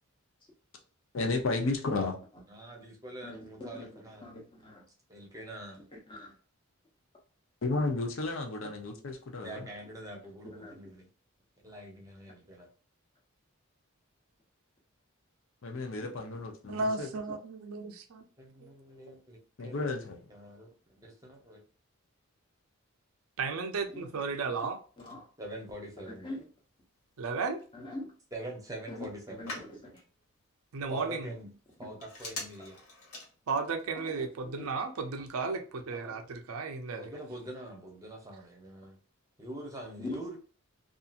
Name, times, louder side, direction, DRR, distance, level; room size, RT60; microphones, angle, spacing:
voice 1, 1.1-2.2 7.6-9.6 15.6-17.1 19.6-20.2, left 3 dB, 60° left, 0.6 m, -32 dB
voice 2, 2.5-4.3 5.1-5.8 9.4-11.1 11.6-12.7 18.4-19.4 19.6-19.9 20.3-20.7 21.0-21.6 25.4-26.3 28.3-29.4 30.9-31.5 31.8-32.8 35.9-36.3 37.0-39.0 39.4-40.4, right 1 dB, 15° right, 0.8 m, -44 dB
voice 3, 3.2-4.8 5.9-6.4 10.4-10.8 16.0-16.1 16.6-16.8 23.9-24.2 25.0-25.3 26.1-26.4 27.7-28.1 28.9-30.0 31.8-32.0 34.1-34.6, left 1 dB, 20° left, 0.8 m, -45 dB
voice 4, 16.7-18.2 19.1-19.2 23.4-24.8 27.2-27.6 30.7-31.3 33.5-37.0, right 4 dB, 80° right, 0.5 m, -34 dB
Telephone, 24.3-33.9, left 2 dB, 90° left, 1.5 m, -49 dB
2.7 x 2.5 x 2.4 m
head